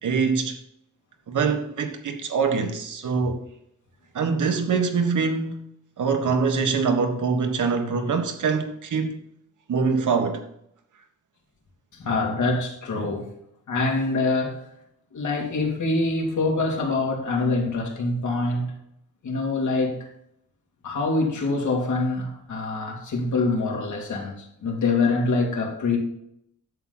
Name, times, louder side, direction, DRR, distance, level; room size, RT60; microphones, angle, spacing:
voice 1, 0.0-0.6 1.3-3.4 4.1-5.6 6.0-9.2 9.7-10.5, right 5 dB, 75° right, 1.4 m, -24 dB
voice 2, 11.9-13.3 13.7-14.6 15.1-18.7 19.2-20.0 20.8-26.0, left 3 dB, 70° left, 2.6 m, -25 dB
11.0 x 7.4 x 4.0 m
wide cardioid pair, 140°, 31 cm